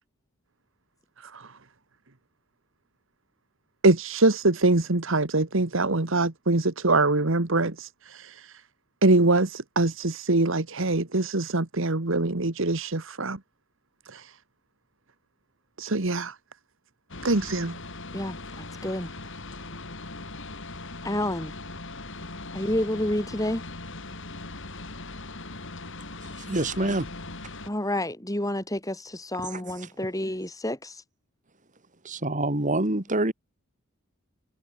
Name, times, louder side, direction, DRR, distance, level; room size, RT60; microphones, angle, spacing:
voice 1, 3.8-8.5 9.0-13.4 14.1-14.3 15.8-16.3 17.2-17.8, right 2 dB, 65° right, 1.6 m, -24 dB
sound 1, 17.1-27.7, left 2 dB, 60° left, 4.7 m, -40 dB
voice 2, 18.1-19.1 21.0-21.5 22.5-23.6 27.7-31.0, left 1 dB, 15° left, 4.4 m, -29 dB
voice 3, 26.5-27.1 32.0-33.3, right 2 dB, 35° right, 2.4 m, -26 dB
head